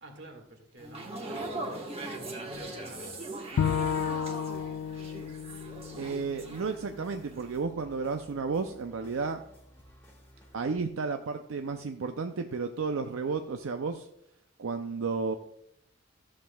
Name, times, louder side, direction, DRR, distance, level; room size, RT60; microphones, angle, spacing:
voice 1, 0.0-3.2, equal, 60° right, 2 dB, 1.8 m, -50 dB
sound 1, 0.8-7.0 7.3-7.6, right 2 dB, 30° right, 1.2 m, -40 dB
sound 2, 2.5-10.5, equal, 10° left, 1.5 m, -57 dB
Bowed string instrument, 3.6-6.8, left 7 dB, 85° left, 0.3 m, -32 dB
voice 2, 6.0-9.4 10.5-14.1 14.6-15.4, right 4 dB, 80° right, 6 dB, 0.5 m, -32 dB
14.0 x 7.4 x 2.3 m, 0.74 s
head